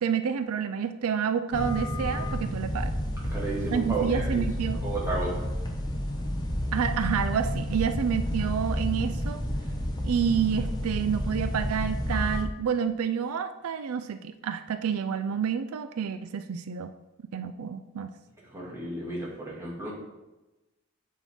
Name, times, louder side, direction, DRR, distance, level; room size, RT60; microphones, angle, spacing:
voice 1, 0.0-2.9 3.7-4.8 6.7-9.4 10.0-16.9 17.3-18.1, right 7 dB, 85° right, 11 dB, 0.4 m, -29 dB
sound 1, 1.5-12.4, equal, 20° left, 0.9 m, -30 dB
voice 2, 3.3-4.4 4.8-5.5 18.5-19.9, right 2 dB, 15° right, -6 dB, 2.0 m, -33 dB
8.3 x 5.5 x 3.5 m, 1.1 s
head